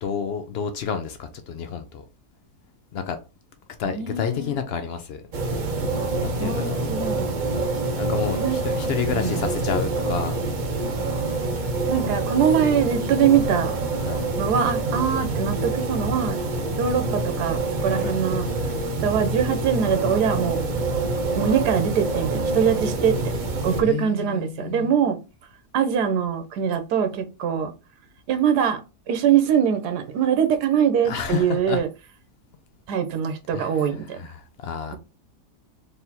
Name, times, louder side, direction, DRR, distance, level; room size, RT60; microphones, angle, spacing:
voice 1, 0.0-2.0 2.9-3.2 3.8-5.2 6.2-6.8 8.0-10.4 14.0-14.2 17.9-18.2 23.7-25.0 31.0-31.8 33.5-33.9 34.1-35.0, left 7 dB, 80° left, 0.5 m, -30 dB
voice 2, 3.9-4.6 6.4-7.4 8.4-8.6 9.1-9.5 11.9-13.8 14.4-16.4 16.8-18.5 19.0-20.6 21.3-23.2 23.6-25.2 25.7-27.7 28.3-28.8 29.1-31.9 32.9-34.2, right 8 dB, 85° right, 1.3 m, -23 dB
sound 1, 5.3-23.8, right 2 dB, 50° right, 0.5 m, -26 dB
4.1 x 3.5 x 2.8 m
omnidirectional pair, 1.7 m